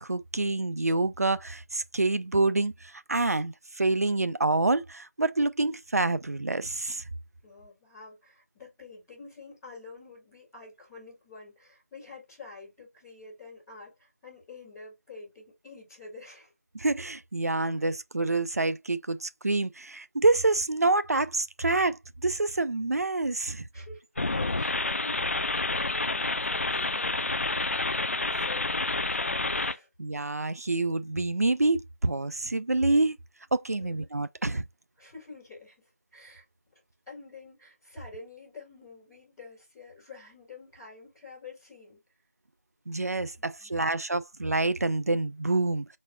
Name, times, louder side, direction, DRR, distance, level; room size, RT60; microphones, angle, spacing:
voice 1, 0.0-7.0 16.7-23.6 30.0-33.2 33.5-34.6 42.9-46.0, right 2 dB, 70° right, 0.5 m, -27 dB
voice 2, 7.4-16.5 17.7-17.8 23.7-29.9 33.7-34.1 35.0-35.8 36.1-36.4 37.1-42.0 43.6-44.0, left 4 dB, 5° left, 3.2 m, -48 dB
sound 1, 24.2-29.8, left 2 dB, 55° left, 0.4 m, -29 dB
4.6 x 4.1 x 2.3 m
figure-of-eight pair, 175°, 9 cm